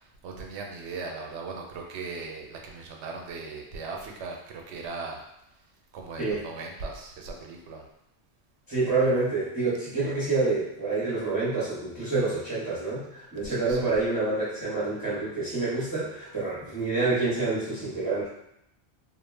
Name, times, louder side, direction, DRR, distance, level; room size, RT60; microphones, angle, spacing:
voice 1, 0.2-5.2 5.9-7.8 13.4-13.9, right 4 dB, 90° right, 1 dB, 0.9 m, -38 dB
voice 2, 8.7-18.3, right 3 dB, 20° right, -11 dB, 0.8 m, -27 dB
2.4 x 2.1 x 3.2 m, 0.80 s
omnidirectional pair, 1.1 m